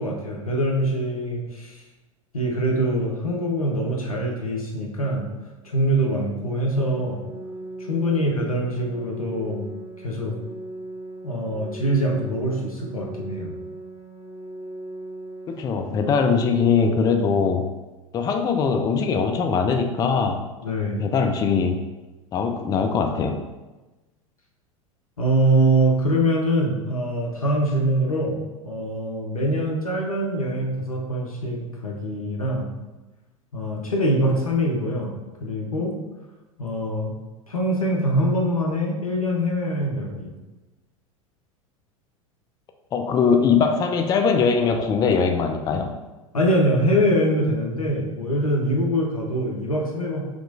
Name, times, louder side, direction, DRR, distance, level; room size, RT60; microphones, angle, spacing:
voice 1, 0.0-1.8 2.3-5.2 5.7-7.2 7.9-9.7 10.0-10.3 11.2-13.5 20.6-21.0 25.2-32.7 33.5-35.1 35.4-35.9 36.6-37.1 37.5-40.3 46.3-50.2, right 1 dB, 85° left, -1 dB, 0.8 m, -23 dB
Organ, 6.5-17.5, right 1 dB, 55° right, 1.1 m, -39 dB
voice 2, 15.5-17.6 18.1-20.4 20.7-21.8 22.3-23.4 42.9-45.9, left 5 dB, 20° left, 5 dB, 0.4 m, -21 dB
5.0 x 3.0 x 2.5 m, 1.1 s
figure-of-eight pair, 85°, 18 cm